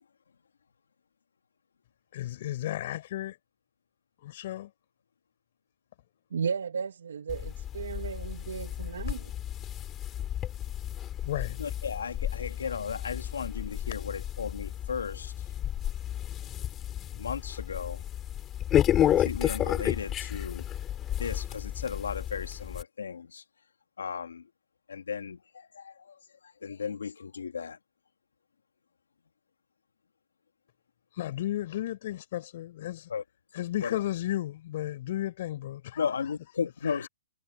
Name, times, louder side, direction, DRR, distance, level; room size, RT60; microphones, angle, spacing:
voice 1, 2.1-3.4 4.2-4.7 11.2-11.6 31.1-33.1 33.5-36.6 36.8-37.1, left 13 dB, 45° left, 6.7 m, -34 dB
voice 2, 6.3-9.3, right 6 dB, 80° right, 1.5 m, -34 dB
sound 1, 7.3-22.8, left 11 dB, 15° left, 7.9 m, -32 dB
voice 3, 11.6-15.3 17.1-18.0 19.0-20.6 21.2-23.4 24.0-24.5 24.9-27.8 33.1-33.2 33.8-34.0 36.0-37.1, left 6 dB, 90° left, 2.8 m, -35 dB
hypercardioid pair, 155°, 0 cm